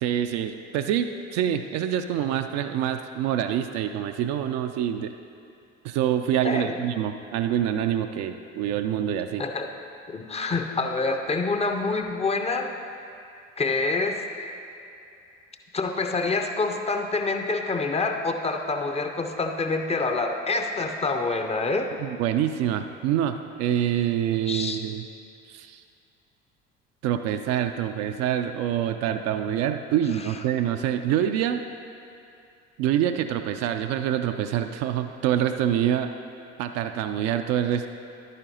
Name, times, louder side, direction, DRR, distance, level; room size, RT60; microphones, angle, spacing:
voice 1, 0.0-5.1 5.8-9.4 22.0-25.0 25.5-25.8 27.0-31.6 32.8-36.1 36.6-37.9, right 10 dB, 45° right, 7 dB, 0.4 m, -26 dB
voice 2, 6.4-6.8 9.4-9.7 10.1-12.7 13.6-14.6 15.7-21.9 24.5-24.8 30.2-30.3, left 3 dB, 15° left, 5 dB, 0.6 m, -27 dB
11.0 x 9.1 x 2.8 m, 2.5 s
figure-of-eight pair, 55°, 37 cm